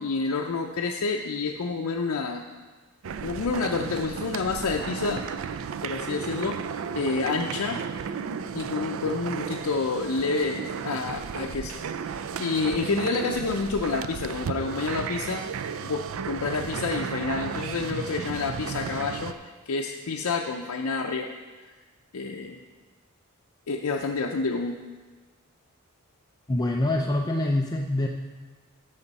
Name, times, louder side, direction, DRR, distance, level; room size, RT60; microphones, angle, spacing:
voice 1, 0.0-2.4 3.2-5.3 5.8-6.6 6.9-7.8 8.3-11.8 12.0-15.5 15.8-19.4 19.7-21.3 22.1-22.6 23.7-24.8, left 4 dB, 80° left, 2 dB, 0.5 m, -29 dB
sound 1, 3.0-19.3, right 6 dB, 65° right, 0.4 m, -34 dB
voice 2, 26.5-28.1, left 1 dB, 20° left, 2 dB, 0.4 m, -25 dB
12.5 x 7.0 x 4.1 m, 1.4 s
head